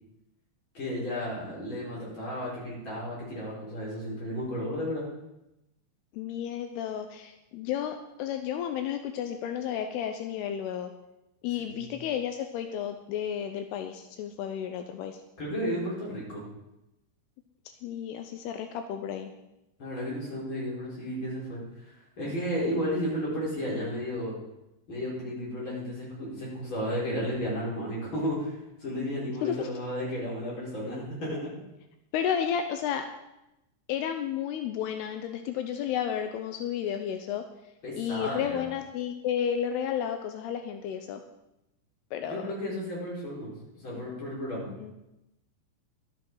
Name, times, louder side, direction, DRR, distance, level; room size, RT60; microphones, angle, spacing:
voice 1, 0.7-5.1 11.7-11.9 15.4-16.4 19.8-21.6 22.2-24.4 24.9-28.5 28.8-31.5 37.8-38.6 42.2-44.8, equal, 25° left, -5 dB, 4.9 m, -33 dB
voice 2, 6.1-10.9 11.4-15.2 17.8-19.3 29.4-29.7 32.1-33.1 33.9-37.4 38.0-41.2 42.1-42.5 44.5-44.9, left 9 dB, 85° left, 7 dB, 2.3 m, -32 dB
12.0 x 11.0 x 4.7 m, 0.90 s
omnidirectional pair, 5.4 m